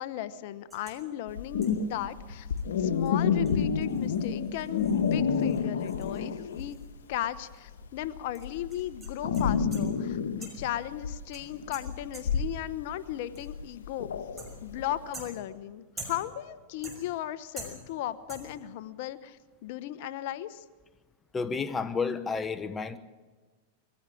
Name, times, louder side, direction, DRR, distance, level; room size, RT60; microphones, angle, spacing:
voice 1, 0.0-2.5 2.8-6.8 7.1-14.1 14.6-20.6, left 12 dB, 60° left, 14 dB, 1.0 m, -36 dB
sound 1, 0.7-1.1 1.6-1.9 2.6-2.7 3.0-3.1 3.5-7.2 7.5-7.6 8.3-10.0 10.4-10.8 11.3-12.6 13.3-13.7 14.4-14.8 15.1-16.5 16.8-17.3 17.6-18.0 18.3-18.7, right 2 dB, 10° right, 5.8 m, -47 dB
sound 2, 1.3-6.9 7.1-15.0, left 6 dB, 85° left, 1.5 m, -29 dB
voice 2, 21.3-23.0, left 4 dB, 20° left, 12 dB, 1.0 m, -31 dB
21.5 x 15.5 x 8.5 m, 1.3 s
hypercardioid pair, 115°, 0 cm